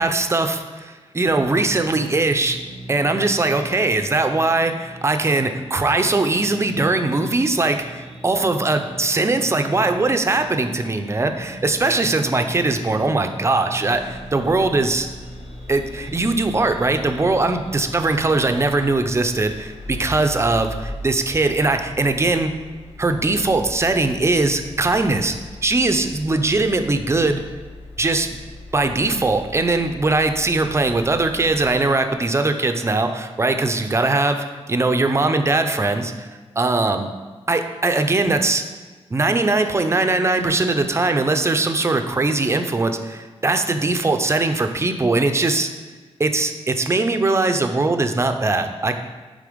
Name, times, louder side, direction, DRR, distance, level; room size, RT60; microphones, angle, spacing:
voice 1, 0.0-2.6 2.9-15.1 15.7-22.5 23.0-25.3 25.6-27.4 28.0-28.4 28.7-36.1 36.6-37.1 37.5-38.6 39.1-45.7 46.2-49.0, right 2 dB, 25° right, 7 dB, 0.5 m, -20 dB
sound 1, 1.2-18.9, right 1 dB, 40° left, 2.2 m, -40 dB
sound 2, 13.9-32.1, left 1 dB, 80° left, 1.1 m, -39 dB
8.5 x 3.8 x 5.0 m, 1.4 s
wide cardioid pair, 145°, 11 cm